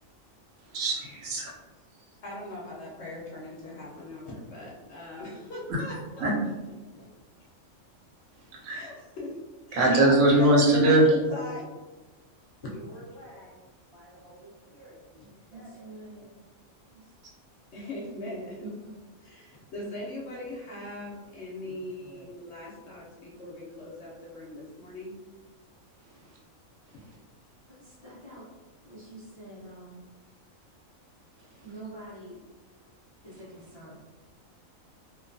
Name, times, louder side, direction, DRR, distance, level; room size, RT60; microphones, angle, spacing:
voice 1, 0.6-1.5 1.9-2.2 5.7-6.4 8.3-8.9 9.7-11.2 17.2-17.3 26.0-26.4 26.9-27.2 31.3-31.7, right 1 dB, 75° right, -3 dB, 1.1 m, -23 dB
voice 2, 2.2-6.3 7.0-7.1 8.7-9.4 9.7-9.8 10.1-10.9 11.3-11.7 17.7-18.7 19.3-25.1 26.9-27.0, left 1 dB, 60° left, -4 dB, 0.8 m, -40 dB
voice 3, 12.2-13.6 13.9-15.8 16.1-16.3 21.7-22.3, right 1 dB, 25° right, -8 dB, 0.7 m, -50 dB
voice 4, 15.5-16.3 16.9-17.1 18.6-18.9 27.7-28.5 28.8-30.0 31.6-32.4 33.2-34.0, right 1 dB, 35° left, -9 dB, 0.5 m, -46 dB
2.8 x 2.2 x 2.5 m, 1.2 s
omnidirectional pair, 1.4 m